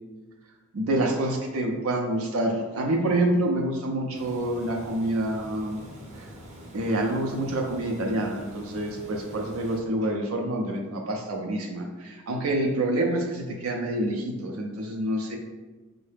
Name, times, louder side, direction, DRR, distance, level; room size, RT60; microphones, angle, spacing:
voice 1, 0.7-5.8 6.2-6.3 6.7-15.4, right 1 dB, 75° right, 1 dB, 0.5 m, -27 dB
Water, 4.1-9.8, equal, 35° right, 0.7 m, -44 dB
5.4 x 2.1 x 3.3 m, 1.2 s
head